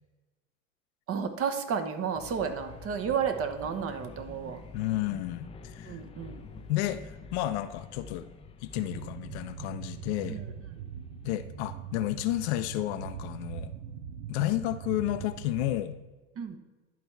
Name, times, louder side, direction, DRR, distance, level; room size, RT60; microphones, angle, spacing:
voice 1, 1.1-4.6 5.9-6.4 10.3-10.4 16.4-16.6, right 7 dB, 35° right, 7 dB, 1.0 m, -32 dB
sound 1, 2.1-12.1, left 3 dB, 15° left, 0.5 m, -48 dB
voice 2, 4.7-6.0 6.7-8.3 8.6-10.4 11.2-13.7 14.3-16.0, left 15 dB, 55° left, 11 dB, 0.6 m, -31 dB
sound 2, 8.7-15.8, right 8 dB, 60° right, 0.8 m, -41 dB
11.0 x 4.3 x 4.5 m, 1.2 s
hypercardioid pair, 90°, 39 cm